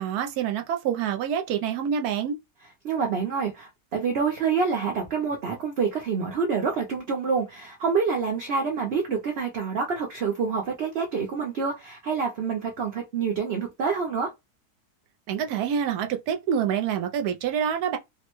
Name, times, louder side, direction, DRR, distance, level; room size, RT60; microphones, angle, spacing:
voice 1, 0.0-2.4 15.3-18.0, right 8 dB, 75° right, 1.0 m, -27 dB
voice 2, 2.8-14.3, right 5 dB, 60° right, 0.7 m, -27 dB
3.4 x 2.1 x 3.0 m
omnidirectional pair, 1.7 m